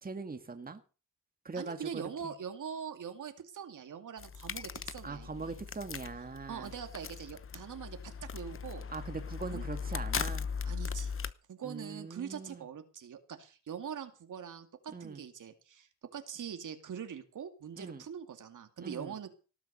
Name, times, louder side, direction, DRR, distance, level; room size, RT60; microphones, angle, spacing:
voice 1, 0.0-0.8 1.4-2.0 5.0-6.7 8.9-10.5 11.6-12.7 14.9-15.2 17.8-18.0 18.8-19.1, right 4 dB, 25° right, 1.9 m, -41 dB
voice 2, 1.5-5.5 6.5-8.9 9.5-9.6 10.7-11.2 11.5-19.3, right 7 dB, 65° right, 2.5 m, -43 dB
sound 1, 4.2-11.3, left 6 dB, 40° left, 1.0 m, -39 dB
18.5 x 8.3 x 6.8 m
cardioid pair, 90°, 33 cm